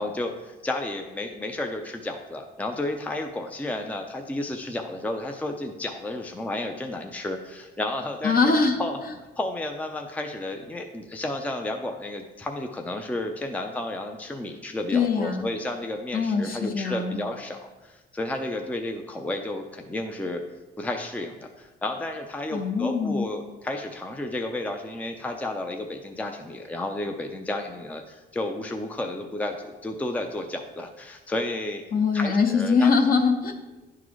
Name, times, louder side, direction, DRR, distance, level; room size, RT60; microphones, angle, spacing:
voice 1, 0.0-8.4 8.8-9.0 9.4-20.4 20.8-31.8 32.1-32.9, left 1 dB, 5° left, 4 dB, 0.5 m, -32 dB
voice 2, 8.2-8.8 14.9-15.5 16.1-17.2 22.5-23.3 31.9-33.5, left 4 dB, 45° left, 4 dB, 1.0 m, -22 dB
10.5 x 3.8 x 3.1 m, 1.1 s
cardioid pair, 90°, 20 cm